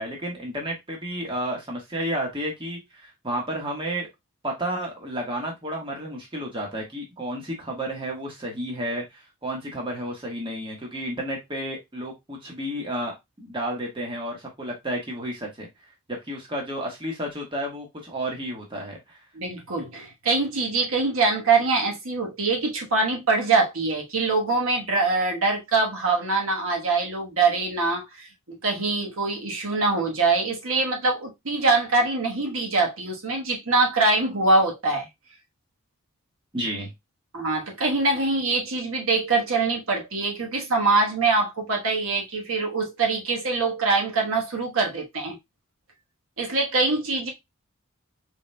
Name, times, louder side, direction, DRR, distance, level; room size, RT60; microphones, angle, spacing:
voice 1, 0.0-4.1 4.4-15.7 16.1-19.2 36.5-36.9, right 1 dB, 25° right, 1.3 m, -31 dB
voice 2, 19.3-35.1 37.3-45.4 46.4-47.3, right 3 dB, 65° right, 1.2 m, -24 dB
4.8 x 3.9 x 2.2 m
head